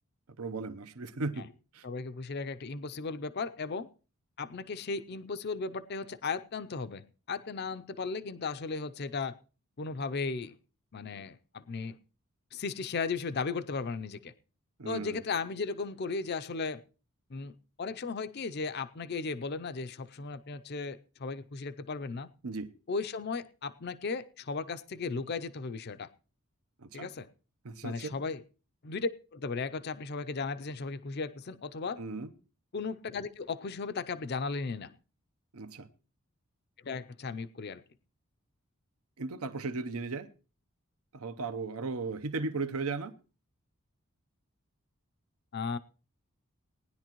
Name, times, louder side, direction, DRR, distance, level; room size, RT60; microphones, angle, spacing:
voice 1, 0.4-1.5 1.7-1.8 14.8-15.2 22.4-22.7 26.8-27.1 27.6-28.2 32.0-32.3 35.5-35.9 39.2-40.3 41.1-43.1, right 3 dB, 80° right, 10 dB, 0.8 m, -36 dB
voice 2, 1.8-3.9 4.4-9.3 9.8-10.5 10.9-12.0 12.5-14.3 14.8-16.8 17.3-17.5 17.8-22.3 22.9-26.1 26.9-27.3 27.8-28.4 28.8-32.0 32.7-34.9 36.8-37.8 45.5-45.8, left 4 dB, 45° left, 12 dB, 0.5 m, -36 dB
18.5 x 10.5 x 3.0 m, 0.35 s
head